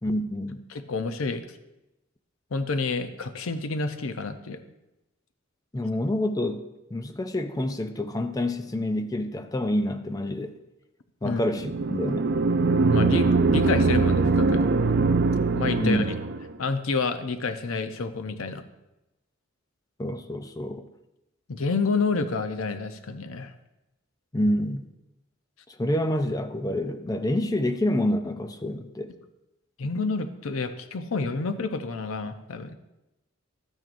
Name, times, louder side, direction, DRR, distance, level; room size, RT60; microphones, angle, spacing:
voice 1, 0.0-0.6 5.7-6.6 6.9-10.6 11.2-12.3 15.8-16.1 20.0-20.9 24.3-24.9 25.8-29.1, left 1 dB, 20° left, 8 dB, 0.5 m, -27 dB
voice 2, 0.7-1.4 2.5-4.6 11.2-11.4 12.9-14.6 15.5-16.1 16.6-18.6 21.5-23.5 29.8-32.7, left 4 dB, 85° left, 9 dB, 0.7 m, -29 dB
sound 1, 11.6-16.5, right 3 dB, 55° right, 0.4 m, -22 dB
12.5 x 9.0 x 2.6 m, 0.96 s
head